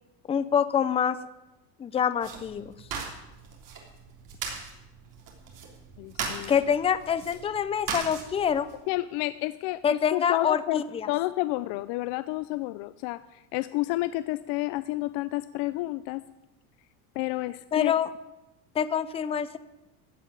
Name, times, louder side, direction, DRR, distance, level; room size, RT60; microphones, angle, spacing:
voice 1, 0.3-1.2 1.8-2.7 6.5-8.7 9.8-11.1 17.7-18.1 18.7-19.6, left 8 dB, 15° left, 14 dB, 0.4 m, -26 dB
sound 1, 2.2-8.8, right 5 dB, 45° right, 3.4 m, -39 dB
voice 2, 6.0-6.6 8.9-10.8 11.1-16.2 17.2-17.9, left 18 dB, 65° left, 15 dB, 0.6 m, -30 dB
15.0 x 5.8 x 9.6 m, 0.96 s
cardioid pair, 140°, 45 cm